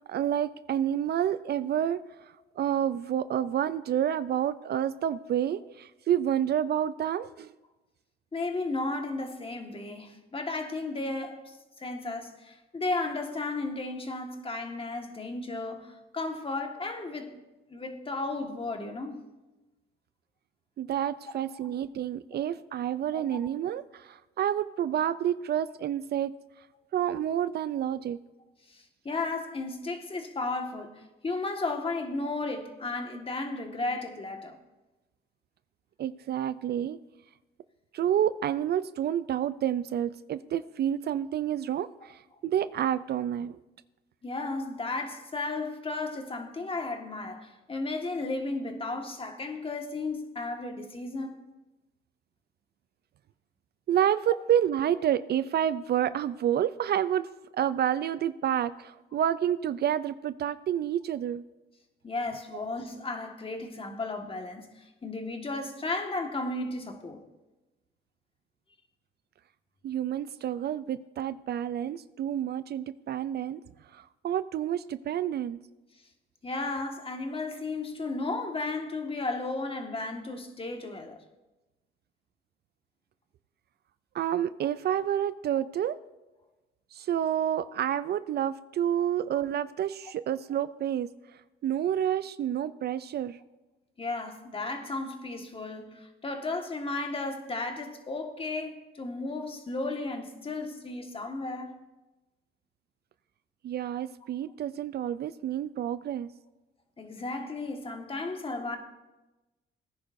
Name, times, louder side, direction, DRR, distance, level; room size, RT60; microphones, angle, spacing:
voice 1, 0.1-2.0 2.6-7.5 20.8-26.3 26.9-28.2 36.0-37.0 37.9-43.6 53.9-57.3 57.5-61.4 69.8-73.6 73.9-75.6 84.1-86.0 86.9-91.1 91.6-93.4 103.6-106.3, right 10 dB, 55° right, 0.4 m, -29 dB
voice 2, 8.3-17.4 17.7-19.2 21.6-21.7 22.3-22.5 23.1-23.4 28.7-34.6 44.2-51.4 62.0-67.2 76.4-81.2 94.0-101.8 107.0-108.8, left 3 dB, 25° left, 1.6 m, -34 dB
18.5 x 10.0 x 2.6 m
cardioid pair, 90°, 20 cm